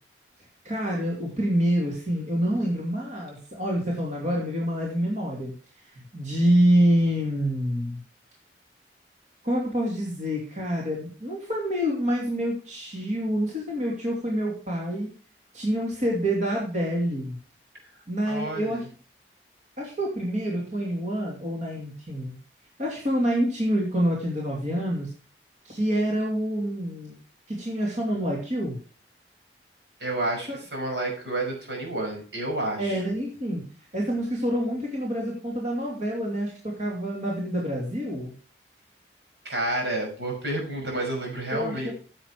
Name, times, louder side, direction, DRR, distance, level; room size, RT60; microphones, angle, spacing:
voice 1, 0.6-5.5 5.9-8.0 9.4-15.1 15.5-17.4 18.1-18.8 19.8-22.4 22.8-25.1 25.6-27.1 27.5-28.8 30.5-30.6 32.8-33.7 33.9-38.3 41.5-41.9, equal, 45° right, -3 dB, 2.7 m, -27 dB
voice 2, 18.3-18.8 30.0-33.1 39.4-41.9, right 1 dB, 75° right, 0 dB, 5.8 m, -30 dB
9.9 x 8.0 x 4.8 m, 0.40 s
head